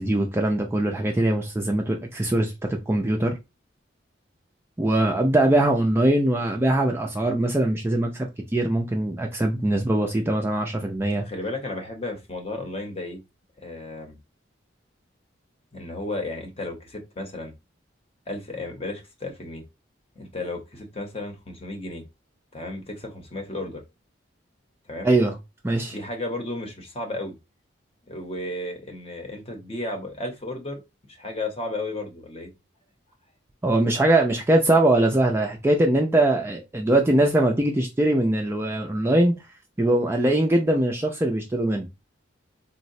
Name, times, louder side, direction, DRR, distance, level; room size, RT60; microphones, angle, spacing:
voice 1, 0.0-3.3 4.8-8.3 8.5-11.3 25.0-25.3 25.6-26.0 33.6-39.3 39.8-41.9, right 1 dB, 15° right, 0.3 m, -22 dB
voice 2, 11.3-13.2 13.6-14.2 15.7-17.5 18.3-19.6 20.2-22.0 22.5-23.8 24.9-25.1 25.9-27.4 28.1-32.5, left 2 dB, 30° left, 0.7 m, -33 dB
3.9 x 2.0 x 2.6 m
head